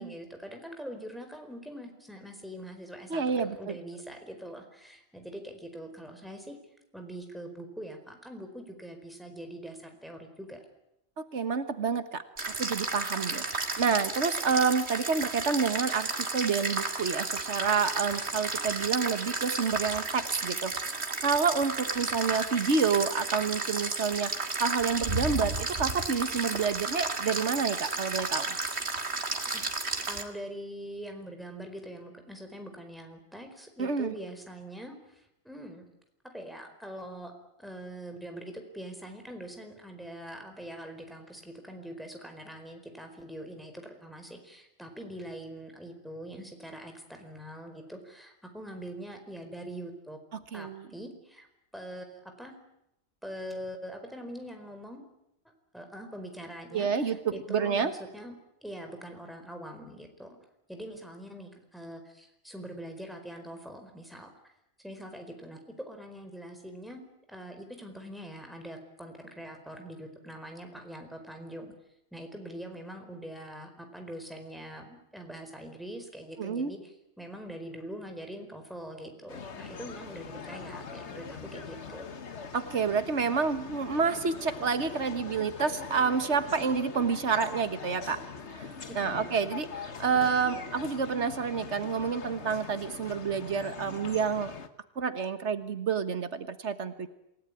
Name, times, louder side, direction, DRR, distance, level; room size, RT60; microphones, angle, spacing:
voice 1, 0.0-6.6 6.9-10.6 29.5-29.6 30.0-35.9 36.3-37.3 37.6-50.2 50.5-51.5 51.7-52.5 53.2-55.1 55.7-58.3 58.6-60.4 60.7-64.3 64.8-65.6 65.9-67.0 67.3-71.7 72.1-76.9 77.2-82.1 88.9-89.4, equal, ahead, 4 dB, 4.6 m, -43 dB
voice 2, 3.1-3.8 11.2-20.7 21.2-24.3 24.6-28.6 33.8-34.1 50.5-50.9 56.7-57.9 76.4-76.7 82.5-88.2 88.5-94.5 95.0-97.1, right 5 dB, 90° right, 10 dB, 1.7 m, -29 dB
sound 1, 12.4-30.2, right 3 dB, 70° right, 2.5 m, -33 dB
sound 2, 79.3-94.7, left 5 dB, 80° left, 1.7 m, -42 dB
27.5 x 17.5 x 9.9 m, 0.84 s
omnidirectional pair, 1.1 m